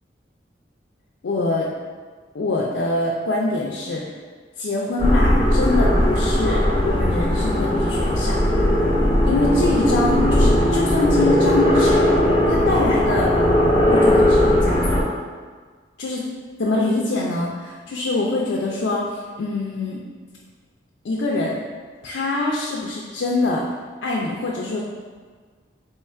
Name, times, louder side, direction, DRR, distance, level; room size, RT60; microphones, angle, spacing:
voice 1, 1.2-1.7 2.3-4.0 4.6-8.4 9.2-12.0 12.5-13.3 13.8-15.1 16.0-16.2 16.6-20.0 21.0-21.6 22.0-23.6 24.0-24.8, left 2 dB, 85° left, -3 dB, 0.4 m, -24 dB
sound 1, 5.0-15.0, left 1 dB, 30° left, 0.5 m, -18 dB
3.0 x 2.4 x 4.3 m, 1.5 s
head